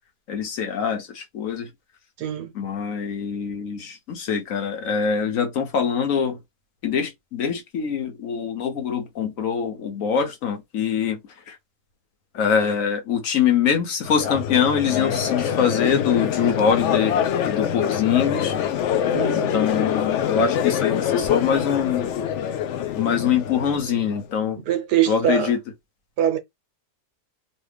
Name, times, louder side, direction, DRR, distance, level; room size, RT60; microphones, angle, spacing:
voice 1, 0.3-1.7 2.5-6.4 6.8-11.2 11.5-11.6 12.3-17.2 17.5-18.5 19.3-22.1 22.9-24.6 25.1-25.6, left 7 dB, 60° left, 1.0 m, -24 dB
voice 2, 2.2-2.5 19.1-19.6 24.6-25.6 26.2-26.4, right 10 dB, 80° right, 1.3 m, -23 dB
Crowd, 14.0-24.2, left 9 dB, 75° left, 0.6 m, -25 dB
3.2 x 2.4 x 3.2 m
omnidirectional pair, 1.8 m